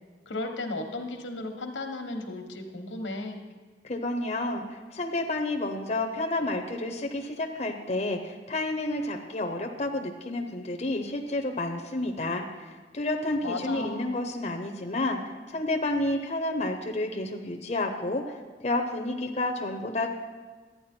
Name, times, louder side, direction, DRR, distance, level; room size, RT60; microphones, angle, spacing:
voice 1, 0.3-3.4 13.4-14.1, left 2 dB, 90° left, 4 dB, 1.2 m, -34 dB
voice 2, 3.8-18.4 18.6-20.1, left 2 dB, 35° left, 3 dB, 0.7 m, -30 dB
11.5 x 9.3 x 4.4 m, 1.4 s
head